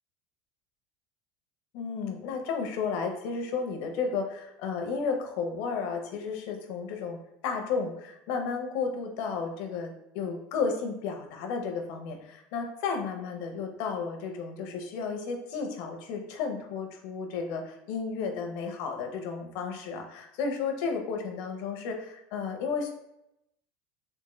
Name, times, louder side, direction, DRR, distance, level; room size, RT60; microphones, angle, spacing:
voice 1, 1.7-7.2 7.4-22.9, left 5 dB, 65° left, 4 dB, 0.6 m, -33 dB
3.5 x 2.5 x 3.0 m, 0.84 s
cardioid pair, 160°, 5 cm